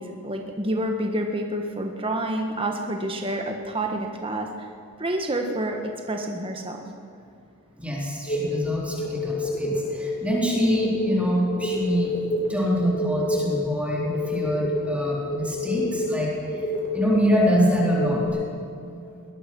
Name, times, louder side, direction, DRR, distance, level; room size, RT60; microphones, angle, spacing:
voice 1, 0.0-4.7 5.0-6.9, right 1 dB, 25° right, 3 dB, 1.5 m, -28 dB
voice 2, 7.8-12.1 12.5-16.7 16.9-18.3, equal, 5° right, -4 dB, 3.9 m, -25 dB
sound 1, 8.3-18.3, left 2 dB, 35° left, 4.9 m, -28 dB
21.5 x 20.0 x 6.2 m, 2.4 s
head